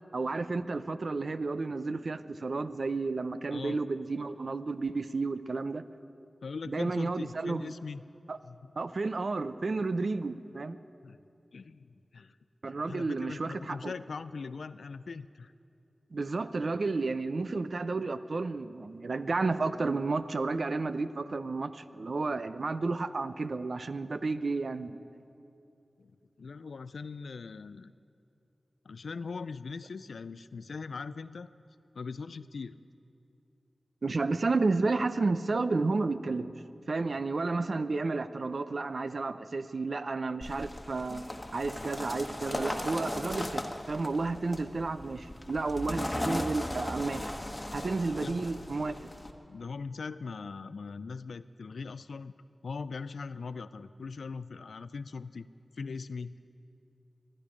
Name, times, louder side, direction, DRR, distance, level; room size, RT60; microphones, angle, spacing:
voice 1, 0.1-5.8 6.7-7.7 8.3-8.4 8.8-10.8 12.6-13.9 16.1-25.0 34.0-36.5 36.9-41.2 41.5-47.3 47.7-49.0, right 3 dB, 65° right, 12 dB, 0.5 m, -32 dB
voice 2, 6.4-8.0 8.4-8.6 11.0-11.2 11.5-12.4 12.9-15.5 26.0-26.1 26.4-27.9 28.8-31.5 31.9-32.8 48.2-48.5 49.5-52.3 52.6-55.5 55.8-56.4, left 4 dB, 85° left, 15 dB, 0.3 m, -40 dB
sound 1, 40.4-49.3, left 1 dB, 25° left, 1.2 m, -37 dB
24.0 x 10.0 x 5.0 m, 2.6 s
cardioid pair, 45°, 0 cm